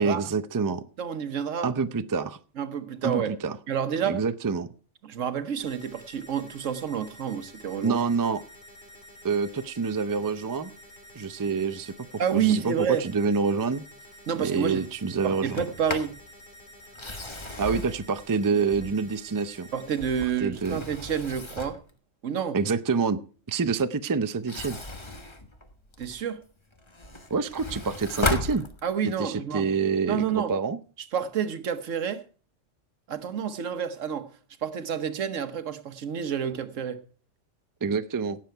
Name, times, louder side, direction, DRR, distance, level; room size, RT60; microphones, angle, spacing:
voice 1, 0.0-0.8 1.6-2.4 3.0-3.6 4.0-4.7 7.8-8.4 9.2-10.7 11.1-11.9 12.3-13.8 14.4-15.6 17.6-19.7 20.4-20.8 22.5-23.2 23.5-24.8 27.3-28.7 29.2-30.8 37.8-38.4, right 5 dB, 25° right, 0.4 m, -27 dB
voice 2, 1.0-1.7 2.6-3.3 3.7-4.2 5.0-8.0 12.2-13.1 14.3-14.9 15.2-16.1 19.7-21.8 22.2-22.6 26.0-26.4 28.8-29.7 30.1-30.5 31.0-32.2 33.1-34.3 34.6-37.0, right 8 dB, 80° right, 1.3 m, -29 dB
sound 1, 5.6-20.2, equal, 40° left, 3.8 m, -50 dB
Sliding door, 15.4-16.2 16.9-19.2 19.7-21.9 24.3-26.2 26.7-29.2, left 2 dB, 25° left, 1.3 m, -35 dB
17.0 x 7.6 x 4.6 m
omnidirectional pair, 1.3 m